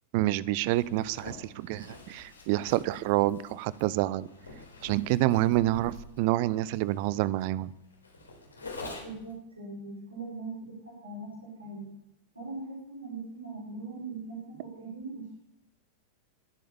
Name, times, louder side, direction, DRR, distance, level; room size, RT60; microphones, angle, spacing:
voice 1, 0.1-4.3 4.8-7.7, right 16 dB, 45° right, 20 dB, 0.7 m, -27 dB
Zipper (clothing), 0.6-9.3, left 2 dB, 75° left, 3.8 m, -46 dB
voice 2, 9.0-11.9 12.3-15.3, right 3 dB, 80° right, -4 dB, 5.1 m, -40 dB
21.5 x 8.6 x 7.1 m, 0.83 s
figure-of-eight pair, 90°, 0 cm